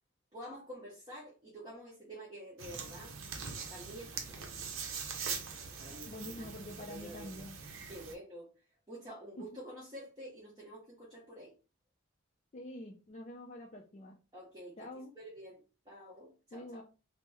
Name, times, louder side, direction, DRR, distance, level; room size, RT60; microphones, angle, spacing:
voice 1, 0.3-3.1 3.7-4.5 5.8-6.5 6.8-7.4 7.9-8.5 8.9-11.5 14.3-14.8 15.1-16.8, equal, 20° right, -6 dB, 0.8 m, -49 dB
sound 1, 2.6-8.1, right 5 dB, 80° right, 0.6 m, -42 dB
voice 2, 6.1-7.6 9.4-9.5 12.5-14.2 14.8-15.1 16.5-16.8, left 1 dB, 35° left, 0 dB, 0.3 m, -46 dB
3.0 x 2.0 x 3.4 m, 0.33 s
head